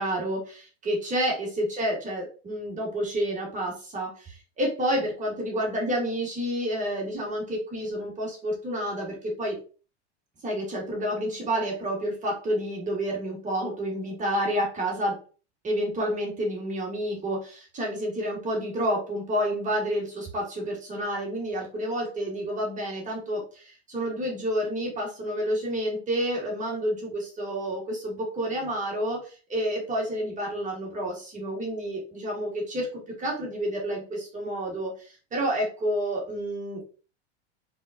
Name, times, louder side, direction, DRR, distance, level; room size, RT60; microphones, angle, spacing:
voice 1, 0.0-9.6 10.4-15.2 15.6-36.9, equal, 20° right, -2 dB, 1.4 m, -29 dB
4.1 x 3.4 x 2.5 m, 0.37 s
hypercardioid pair, 110°, 34 cm